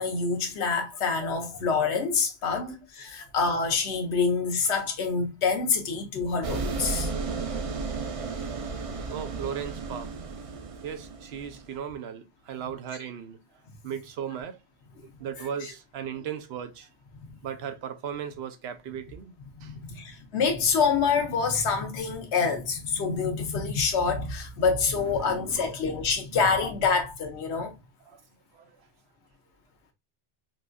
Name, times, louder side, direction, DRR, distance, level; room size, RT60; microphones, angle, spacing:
voice 1, 0.0-7.1 19.6-27.7, left 5 dB, 80° left, 1.1 m, -26 dB
sound 1, 6.4-11.8, right 4 dB, 50° right, 0.4 m, -33 dB
voice 2, 9.1-10.6 10.8-13.4 13.8-14.6 15.0-16.9 17.4-19.3 19.6-19.7 24.9-25.7 26.3-26.4 28.1-28.2 28.5-28.7, right 8 dB, 70° right, 0.8 m, -37 dB
4.1 x 2.6 x 2.2 m
omnidirectional pair, 1.1 m